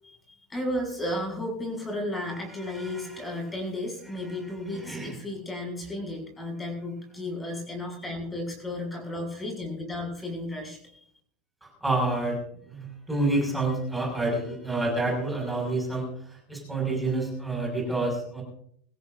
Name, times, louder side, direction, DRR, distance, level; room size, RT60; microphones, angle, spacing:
voice 1, 0.0-10.8, left 1 dB, 10° left, 2 dB, 6.9 m, -33 dB
voice 2, 2.7-3.2 4.7-5.2 11.6-18.4, right 2 dB, 5° right, -1 dB, 6.2 m, -29 dB
23.5 x 16.0 x 2.7 m, 0.64 s
supercardioid pair, 155°, 0 cm